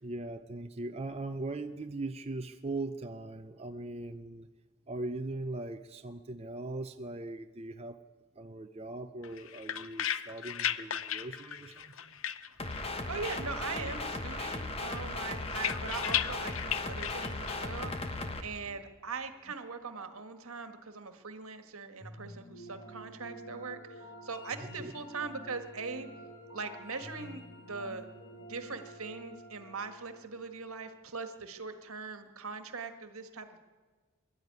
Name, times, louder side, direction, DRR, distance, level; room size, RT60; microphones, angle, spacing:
voice 1, 0.0-4.5 4.9-8.0 8.4-12.2 24.8-24.9, right 2 dB, 30° right, 6 dB, 0.6 m, -40 dB
sound 1, 9.2-13.0 13.2-14.1 14.4-17.7, left 10 dB, 65° left, 0.7 m, -36 dB
sound 2, 12.6-18.4, left 2 dB, 25° left, 1.3 m, -37 dB
voice 2, 13.1-26.1 26.5-28.1 28.5-33.6, right 4 dB, 75° right, 8 dB, 1.7 m, -41 dB
sound 3, 22.0-31.1, right 1 dB, 85° left, 7.7 m, -49 dB
23.0 x 12.0 x 9.5 m, 1.4 s
head